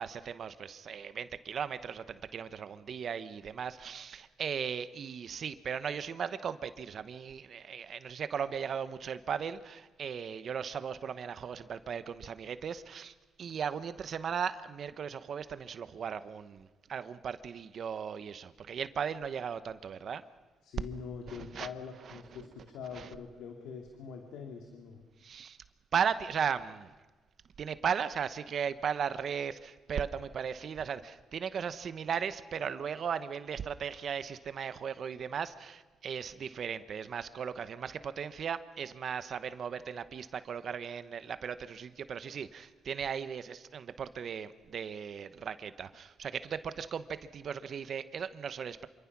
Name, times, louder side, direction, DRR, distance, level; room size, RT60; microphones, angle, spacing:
voice 1, 0.0-20.2 21.3-21.7 22.1-22.4 22.9-23.1 25.2-25.6 25.9-26.9 27.6-48.9, right 7 dB, 55° right, 13 dB, 1.0 m, -37 dB
voice 2, 20.6-25.0, left 6 dB, 85° left, 3 dB, 2.3 m, -44 dB
26.5 x 24.5 x 6.1 m, 1.2 s
cardioid pair, 90°, 0 cm